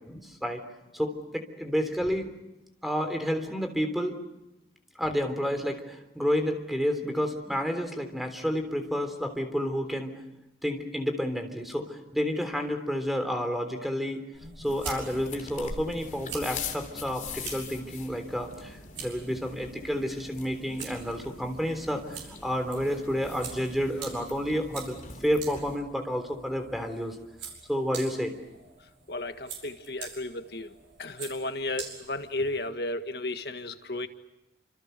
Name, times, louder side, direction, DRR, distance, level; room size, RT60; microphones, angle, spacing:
voice 1, 0.1-0.6 0.9-2.3 2.8-4.2 5.0-10.1 10.6-14.2 14.6-25.0 25.2-27.2 27.7-28.3, equal, ahead, 6 dB, 3.4 m, -30 dB
sound 1, 14.3-32.7, right 6 dB, 85° right, 7.2 m, -46 dB
sound 2, 14.6-25.8, left 5 dB, 40° left, 3.3 m, -43 dB
voice 2, 29.1-30.7 31.0-34.1, left 2 dB, 55° left, 8 dB, 1.7 m, -33 dB
29.0 x 27.0 x 6.8 m, 0.96 s
head